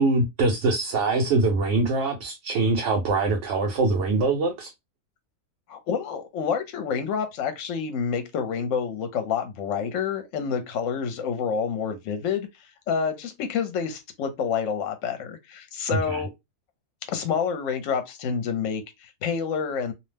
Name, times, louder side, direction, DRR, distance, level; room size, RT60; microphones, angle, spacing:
voice 1, 0.0-4.7 16.1-16.2, right 3 dB, 60° right, 0.9 m, -23 dB
voice 2, 5.7-12.5 12.9-16.3 17.1-19.9, left 6 dB, 65° left, 1.0 m, -28 dB
2.7 x 2.0 x 3.3 m
omnidirectional pair, 1.5 m